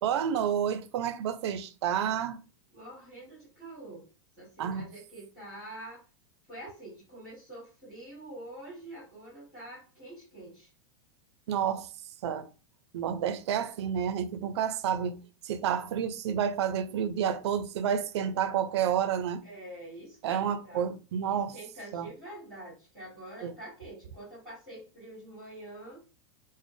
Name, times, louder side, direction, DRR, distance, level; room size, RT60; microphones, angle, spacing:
voice 1, 0.0-2.4 4.6-4.9 11.5-11.9 12.2-12.5 12.9-19.5 20.2-21.5 21.9-22.1 23.4-23.5, right 8 dB, 70° right, 0.4 m, -30 dB
voice 2, 2.7-4.1 4.4-6.0 6.5-10.7 19.4-20.9 21.2-26.0, right 1 dB, 5° right, 1.8 m, -46 dB
4.1 x 2.0 x 3.1 m
supercardioid pair, 165°, 15 cm